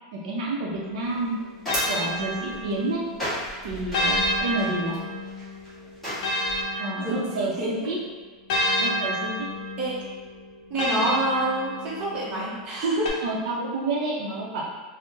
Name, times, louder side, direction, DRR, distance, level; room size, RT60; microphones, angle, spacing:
voice 1, 0.1-1.3 1.9-3.1 3.6-5.0 6.8-8.0 8.8-9.5 13.2-14.6, right 2 dB, 65° right, -3 dB, 0.6 m, -29 dB
sound 1, 0.7-3.2 3.9-7.7 8.5-12.3 13.1-13.2, left 1 dB, 40° left, 0.6 m, -30 dB
sound 2, 1.0-6.6, equal, ahead, 1.2 m, -35 dB
voice 2, 7.0-7.9 9.8-10.0 10.7-13.2, right 1 dB, 25° right, -6 dB, 0.8 m, -27 dB
3.7 x 2.1 x 3.8 m, 1.5 s
supercardioid pair, 175°, 4 cm